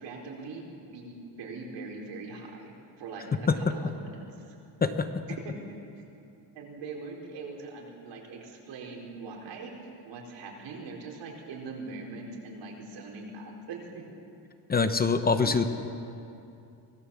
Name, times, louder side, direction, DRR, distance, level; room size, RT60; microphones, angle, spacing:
voice 1, 0.0-2.7 3.0-4.6 5.4-5.9 6.1-6.2 6.5-9.7 10.0-14.0 15.4-15.7, right 3 dB, 85° right, -1 dB, 4.4 m, -42 dB
voice 2, 14.7-15.7, left 4 dB, 20° left, 8 dB, 0.8 m, -24 dB
24.0 x 18.5 x 7.1 m, 2.7 s
cardioid pair, 180°, 42 cm